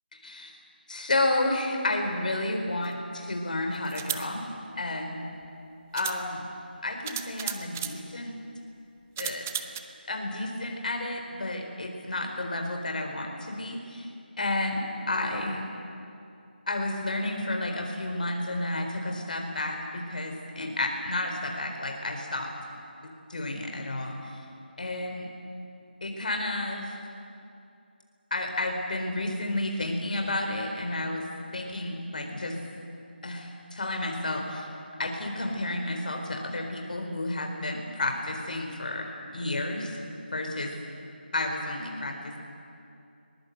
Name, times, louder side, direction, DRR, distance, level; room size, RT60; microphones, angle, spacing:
voice 1, 0.9-4.5 4.8-5.2 5.9-6.4 6.8-8.3 9.2-9.4 10.1-14.1 14.4-15.6 16.7-22.5 23.3-24.4 24.8-25.3 26.0-26.9 28.3-31.2 31.5-32.6 33.2-34.7 35.0-39.1 39.3-40.7 41.3-42.4, left 2 dB, 50° left, 3 dB, 4.2 m, -31 dB
sound 1, 2.8-2.9 3.8-4.3 5.4-5.5 5.9-6.2 7.1-8.0 9.2-9.8, right 10 dB, 15° right, 0.5 m, -34 dB
22.0 x 22.0 x 8.0 m, 2.6 s
figure-of-eight pair, 170°, 6 cm